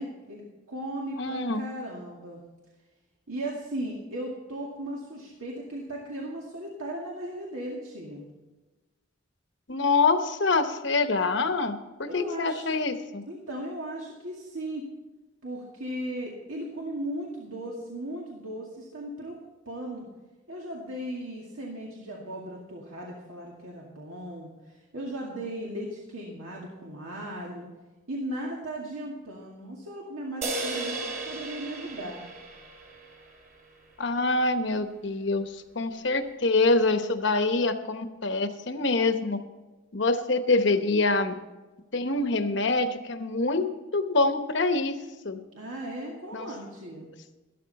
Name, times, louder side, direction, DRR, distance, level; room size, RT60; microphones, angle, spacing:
voice 1, 0.0-2.4 3.3-8.3 12.1-12.8 13.3-14.9 15.4-19.4 19.7-20.1 20.5-27.7 28.1-32.2 45.5-47.1, right 1 dB, 85° right, -3 dB, 2.1 m, -37 dB
voice 2, 1.2-1.6 9.7-13.2 34.0-39.4 39.9-41.4 41.9-45.0 45.2-45.4 46.3-46.5, left 3 dB, 60° left, 8 dB, 1.0 m, -25 dB
sound 1, 30.4-33.9, right 2 dB, 40° right, 3.0 m, -36 dB
13.5 x 12.5 x 4.1 m, 1.2 s
head